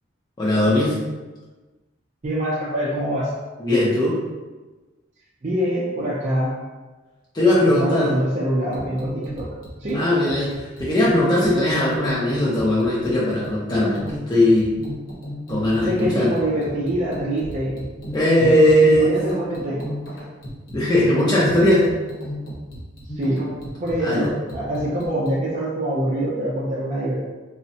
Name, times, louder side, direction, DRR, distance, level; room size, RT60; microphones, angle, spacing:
voice 1, 0.4-1.0 3.6-4.2 7.3-8.1 9.9-14.0 14.3-14.7 15.5-16.3 18.1-19.2 20.7-21.9 24.0-24.3, left 1 dB, 20° left, -7 dB, 0.5 m, -18 dB
voice 2, 2.2-3.3 5.4-6.6 7.7-9.5 9.8-10.0 15.8-17.8 18.4-19.9 23.2-23.5 23.8-27.2, right 1 dB, 40° right, -6 dB, 0.4 m, -24 dB
sound 1, 8.7-25.5, equal, 75° left, 0.8 m, -35 dB
3.4 x 2.1 x 2.7 m, 1.2 s
head